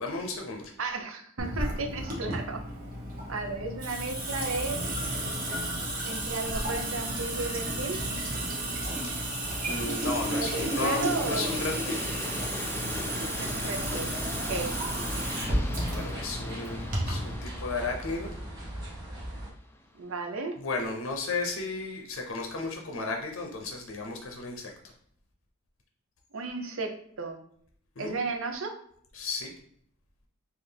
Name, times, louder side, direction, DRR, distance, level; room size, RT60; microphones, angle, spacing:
voice 1, 0.0-0.7 9.7-12.2 15.9-18.4 20.6-24.9 28.0-28.2 29.1-29.5, left 3 dB, 65° left, 2 dB, 0.6 m, -34 dB
voice 2, 0.8-2.6 3.3-4.9 6.0-8.0 10.3-11.6 13.3-14.1 14.5-15.3 19.9-20.6 26.3-27.4 28.0-28.8, right 3 dB, 65° right, 5 dB, 0.6 m, -34 dB
Water tap faucet / Sink (filling or washing) / Drip, 1.4-17.3, right 1 dB, 40° right, 1.0 m, -32 dB
sound 1, 8.8-19.8, left 2 dB, 10° left, 0.3 m, -40 dB
sound 2, 13.6-19.5, right 1 dB, 20° right, 1.6 m, -40 dB
4.1 x 2.5 x 3.3 m, 0.65 s
head